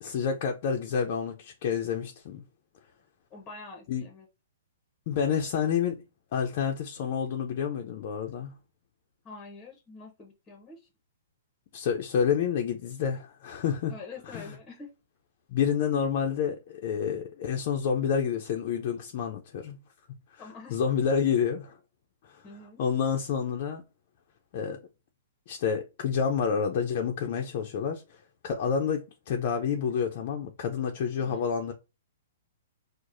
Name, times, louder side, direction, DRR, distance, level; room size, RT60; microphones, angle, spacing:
voice 1, 0.0-2.4 3.9-4.0 5.1-6.0 6.3-8.5 11.7-13.9 14.3-14.5 15.5-19.8 20.3-20.4 20.7-21.8 22.2-22.4 22.8-23.8 24.5-24.8 25.5-31.7, left 7 dB, 50° left, 0.5 m, -29 dB
voice 2, 3.3-4.3 9.2-10.9 13.9-14.9 20.4-20.8 22.4-22.8 31.2-31.5, left 3 dB, 20° left, 0.8 m, -46 dB
4.6 x 2.0 x 2.5 m
hypercardioid pair, 135°, 0 cm